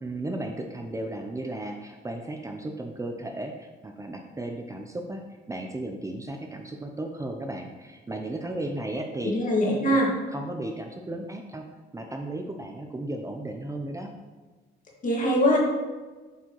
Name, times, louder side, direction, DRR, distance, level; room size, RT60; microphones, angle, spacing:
voice 1, 0.0-5.2 5.5-9.3 9.8-10.0 10.3-11.6 11.9-14.1, right 1 dB, 15° right, 3 dB, 0.5 m, -35 dB
voice 2, 9.3-10.1 15.0-15.6, equal, 40° left, -2 dB, 1.8 m, -22 dB
8.2 x 4.4 x 3.0 m, 1.3 s
cardioid pair, 90°, 20 cm